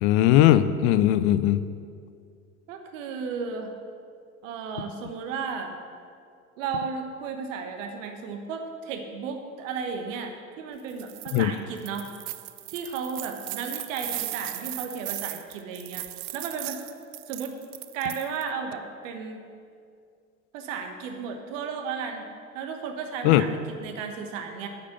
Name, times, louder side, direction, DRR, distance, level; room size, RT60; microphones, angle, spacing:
voice 1, 0.0-1.7 11.3-11.5 23.2-23.4, left 13 dB, 45° left, 14 dB, 0.5 m, -19 dB
voice 2, 2.7-3.7 4.4-5.7 6.6-12.1 12.7-16.0 16.3-16.8 17.3-17.5 17.9-19.4 20.5-22.2 22.5-24.7, right 5 dB, 60° right, 5 dB, 1.4 m, -34 dB
sound 1, 10.9-11.4 11.8-18.5, right 19 dB, 40° right, 0.4 m, -37 dB
9.3 x 5.7 x 7.9 m, 2.3 s
figure-of-eight pair, 70°, 43 cm